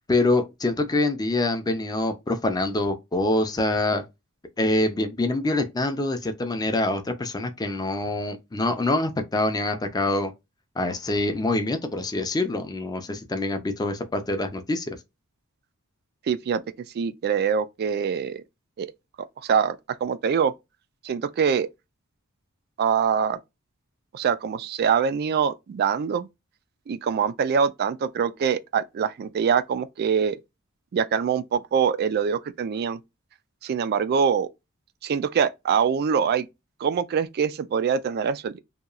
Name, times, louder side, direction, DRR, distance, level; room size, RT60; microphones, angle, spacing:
voice 1, 0.1-4.0 4.6-10.3 10.8-15.0, left 2 dB, 20° left, 0.4 m, -25 dB
voice 2, 16.3-16.6 16.9-18.4 18.8-18.9 19.4-19.8 20.0-20.5 21.0-21.7 22.8-23.4 24.1-26.3 26.9-30.4 30.9-33.0 33.6-34.5 35.0-36.5 36.8-38.6, right 7 dB, 45° right, 0.3 m, -24 dB
2.8 x 2.3 x 2.4 m
head